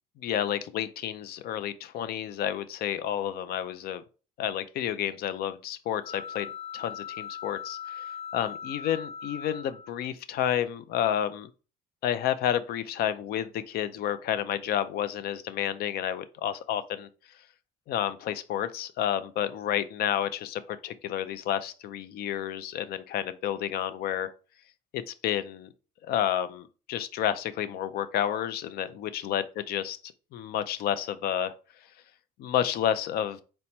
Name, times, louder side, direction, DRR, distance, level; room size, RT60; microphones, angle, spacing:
voice 1, 0.2-4.0 4.4-6.5 6.7-8.0 8.3-11.5 12.0-17.1 17.9-24.3 24.9-25.7 26.0-30.0 30.3-31.5 32.4-33.4, left 10 dB, 65° left, 0.4 m, -30 dB
sound 1, 6.0-10.1, left 7 dB, 35° left, 1.1 m, -40 dB
4.3 x 2.2 x 4.0 m
cardioid pair, 110°, 17 cm